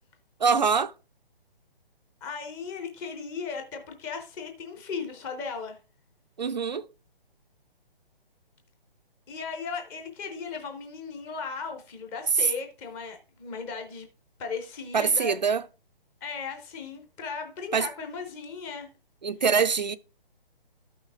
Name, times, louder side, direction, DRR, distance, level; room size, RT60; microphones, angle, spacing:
voice 1, 0.4-0.9 6.4-6.9 14.9-15.6 17.7-17.9 19.2-20.0, right 5 dB, 50° right, 0.5 m, -24 dB
voice 2, 2.2-5.8 9.3-14.1 14.4-15.4 16.2-18.9, left 5 dB, 10° left, 0.6 m, -36 dB
12.5 x 5.8 x 3.6 m
figure-of-eight pair, 135°, 29 cm